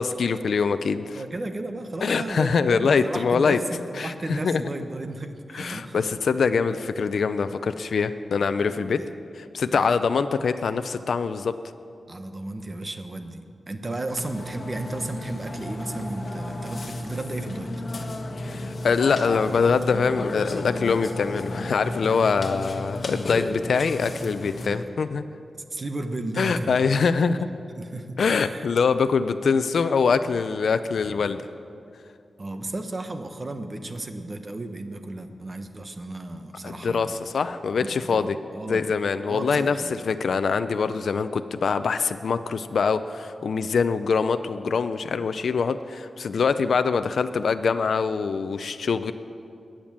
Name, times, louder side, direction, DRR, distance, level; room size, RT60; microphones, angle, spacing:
voice 1, 0.0-1.2 2.0-3.6 4.0-4.6 5.5-9.0 9.3-11.5 18.4-25.2 26.4-27.4 28.2-31.4 36.6-38.4 38.7-49.1, left 5 dB, 75° left, 10 dB, 0.5 m, -24 dB
voice 2, 1.1-6.0 8.9-9.1 9.7-9.8 12.1-17.7 24.6-24.9 25.7-27.1 27.8-28.7 32.4-37.2 37.8-38.9 39.3-40.0, right 2 dB, 35° right, 7 dB, 1.1 m, -34 dB
Burping eructation, 14.1-24.7, left 1 dB, 50° left, 1.5 m, -33 dB
21.0 x 8.9 x 7.4 m, 2.5 s
wide cardioid pair, 115°, 0 cm